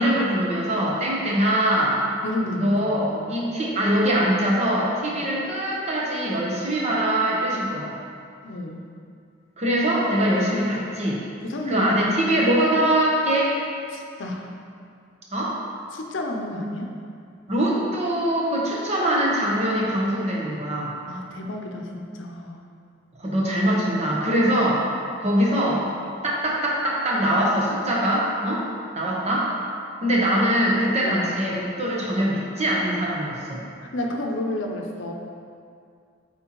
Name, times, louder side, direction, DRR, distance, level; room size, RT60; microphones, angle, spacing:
voice 1, 0.0-2.0 2.6-7.9 9.6-11.2 11.6-13.6 15.3-15.6 17.5-20.9 23.2-24.8 25.2-25.8 26.2-28.7 29.0-29.5 30.0-33.6, right 1 dB, 35° right, -4 dB, 1.0 m, -22 dB
voice 2, 2.2-3.3 8.4-8.8 11.4-12.1 13.9-14.5 15.9-16.9 21.1-22.6 31.0-31.3 33.8-35.1, left 1 dB, 90° left, 2 dB, 0.7 m, -31 dB
7.8 x 4.4 x 3.1 m, 2.3 s
head